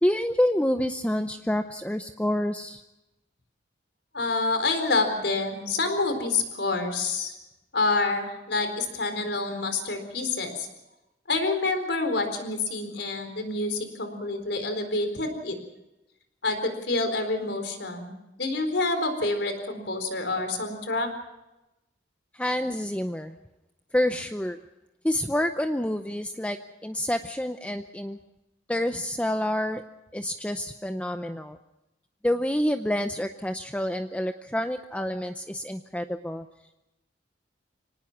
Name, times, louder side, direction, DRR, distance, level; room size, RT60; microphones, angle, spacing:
voice 1, 0.0-2.8 22.3-23.4 23.9-24.6 25.0-26.6 26.8-28.2 28.7-29.8 30.1-31.6 32.2-36.5, left 1 dB, 5° left, 7 dB, 0.6 m, -28 dB
voice 2, 4.1-7.3 7.7-10.7 11.3-15.6 16.4-18.1 18.4-21.1, left 3 dB, 70° left, 7 dB, 4.2 m, -27 dB
25.5 x 19.0 x 6.0 m, 0.96 s
head